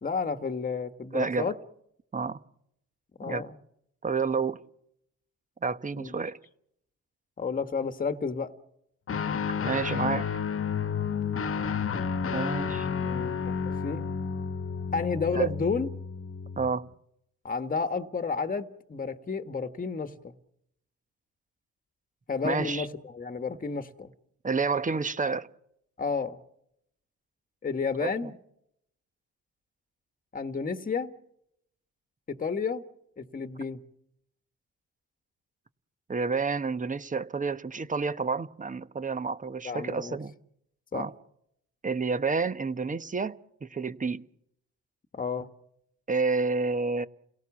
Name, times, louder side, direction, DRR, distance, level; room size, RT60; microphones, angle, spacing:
voice 1, 0.0-1.6 3.2-3.5 6.0-6.1 7.4-8.5 13.0-13.4 13.8-14.1 14.9-15.9 17.4-20.3 22.3-24.1 26.0-26.4 27.6-28.4 30.3-31.1 32.3-32.8 33.2-33.8 39.6-40.2 40.9-41.1 45.1-45.5, left 5 dB, 30° left, 1.5 m, -31 dB
voice 2, 1.1-1.5 2.1-2.4 3.2-3.4 4.0-4.6 5.6-6.4 9.6-10.3 12.3-12.9 15.3-15.5 16.6-16.9 22.4-22.9 24.4-25.5 28.0-28.1 36.1-40.3 40.9-41.1 41.8-44.2 46.1-47.1, right 4 dB, 25° right, 1.1 m, -29 dB
Guitar, 9.1-16.7, left 6 dB, 45° left, 1.3 m, -31 dB
29.5 x 17.5 x 7.3 m
cardioid pair, 90°, 30 cm